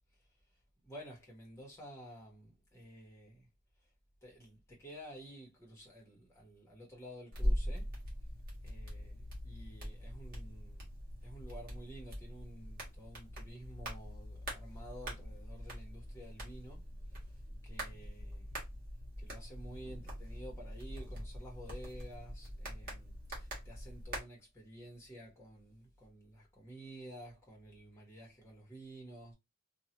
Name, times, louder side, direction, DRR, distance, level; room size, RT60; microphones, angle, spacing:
voice 1, 0.8-3.5 4.2-7.9 8.6-9.1 9.4-10.9 11.2-16.8 17.6-18.5 19.2-29.3, right 1 dB, 10° left, 1.2 m, -52 dB
sound 1, 7.3-24.2, equal, 40° right, 1.3 m, -42 dB
2.8 x 2.4 x 2.8 m
head